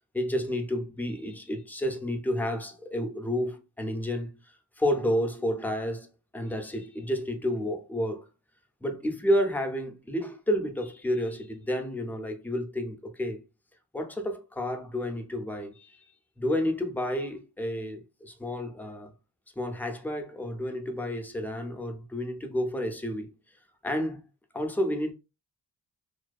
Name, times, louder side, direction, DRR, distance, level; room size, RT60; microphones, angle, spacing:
voice 1, 0.1-4.3 4.8-8.3 8.8-13.4 13.9-16.1 16.4-19.1 19.6-23.3 23.8-24.2 24.5-25.1, equal, 5° left, 0.5 m, -30 dB
2.5 x 2.1 x 2.3 m
cardioid pair, 50°, 43 cm